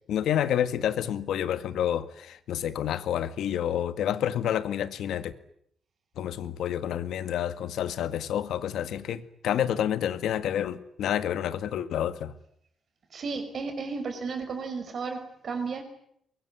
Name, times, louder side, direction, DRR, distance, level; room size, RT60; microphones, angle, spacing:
voice 1, 0.1-5.3 6.2-12.4, left 10 dB, 90° left, 1.9 m, -29 dB
voice 2, 13.1-15.8, right 4 dB, 40° right, 5.2 m, -33 dB
24.0 x 23.0 x 9.8 m
wide cardioid pair, 180°, 0 cm